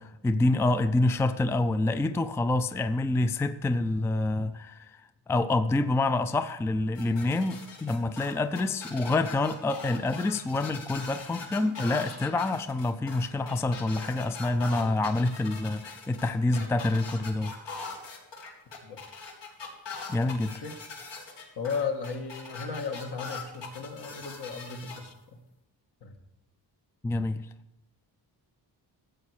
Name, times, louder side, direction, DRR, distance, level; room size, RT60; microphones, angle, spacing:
voice 1, 0.0-5.0 5.3-17.5 20.1-20.5 27.0-27.5, left 2 dB, 5° left, 10 dB, 0.3 m, -27 dB
sound 1, 7.0-25.0, left 4 dB, 85° left, 2.5 m, -41 dB
voice 2, 21.6-25.4 26.0-26.2, left 5 dB, 65° left, 4 dB, 1.6 m, -35 dB
14.0 x 8.2 x 4.9 m, 1.0 s
wide cardioid pair, 150°, 42 cm